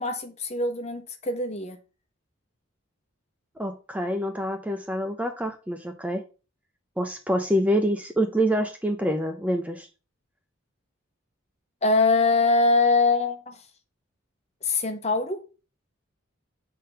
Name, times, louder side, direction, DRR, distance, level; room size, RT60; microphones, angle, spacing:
voice 1, 0.0-1.8 11.8-13.6 14.6-15.4, left 3 dB, 30° left, 5 dB, 1.2 m, -23 dB
voice 2, 3.6-6.2 7.0-9.9, equal, 5° right, 6 dB, 0.6 m, -26 dB
8.4 x 3.8 x 5.4 m, 0.33 s
head